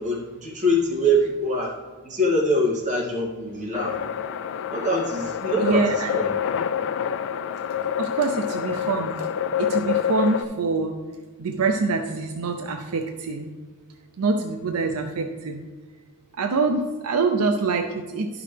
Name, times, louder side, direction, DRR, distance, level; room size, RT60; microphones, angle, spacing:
voice 1, 0.0-1.7 2.0-4.0 4.7-5.8 6.1-6.3, equal, 35° right, -5 dB, 2.3 m, -23 dB
sound 1, 3.7-10.4, left 8 dB, 55° left, 0.3 m, -27 dB
voice 2, 5.6-6.2 8.0-9.2 9.6-11.0 11.4-13.5 14.2-15.6 16.4-18.4, right 4 dB, 75° right, 5 dB, 0.6 m, -25 dB
10.5 x 6.0 x 3.3 m, 1.4 s
head